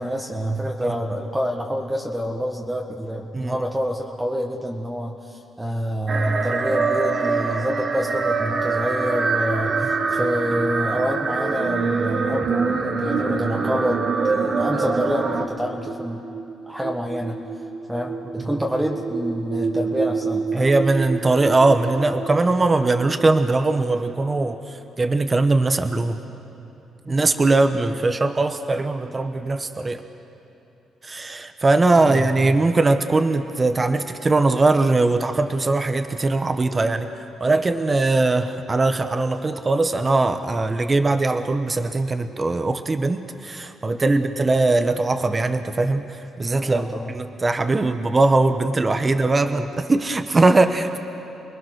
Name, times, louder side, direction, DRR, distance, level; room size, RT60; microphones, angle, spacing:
voice 1, 0.0-16.2 16.6-17.4 17.9-20.7 27.1-27.3 31.9-32.6 44.1-44.3 46.6-47.1 49.1-49.2, equal, 10° right, 0 dB, 1.5 m, -27 dB
sound 1, 6.1-15.5, right 4 dB, 45° right, 1.7 m, -24 dB
sound 2, 8.6-24.9, right 5 dB, 85° right, 1.8 m, -32 dB
voice 2, 20.5-26.2 27.1-30.0 31.0-37.1 37.4-51.0, right 2 dB, 25° right, 8 dB, 1.1 m, -20 dB
28.5 x 20.5 x 6.4 m, 2.9 s
cardioid pair, 90°, 0 cm